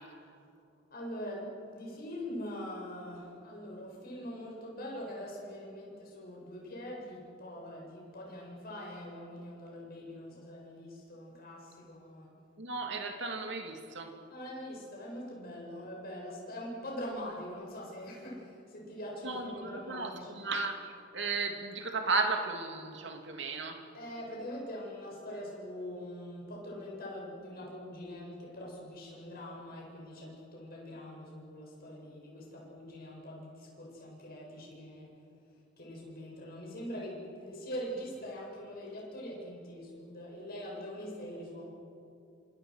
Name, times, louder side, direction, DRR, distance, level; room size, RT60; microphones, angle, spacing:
voice 1, 0.9-12.3 14.3-20.4 23.9-35.1 35.8-41.6, equal, 50° left, -3 dB, 7.7 m, -43 dB
voice 2, 12.6-14.1 19.2-23.8, right 3 dB, 65° right, 4 dB, 2.7 m, -35 dB
28.5 x 27.0 x 6.5 m, 2.6 s
head